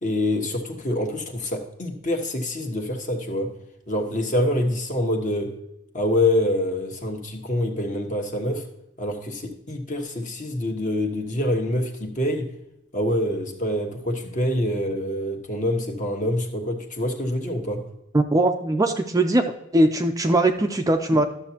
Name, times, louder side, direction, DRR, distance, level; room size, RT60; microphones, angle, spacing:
voice 1, 0.0-3.5 3.9-5.6 5.9-8.7 9.0-12.5 12.9-17.8, left 1 dB, 40° left, 1.3 m, -26 dB
voice 2, 18.1-19.4 19.7-21.2, right 1 dB, 15° right, 0.4 m, -20 dB
12.5 x 7.0 x 2.9 m
head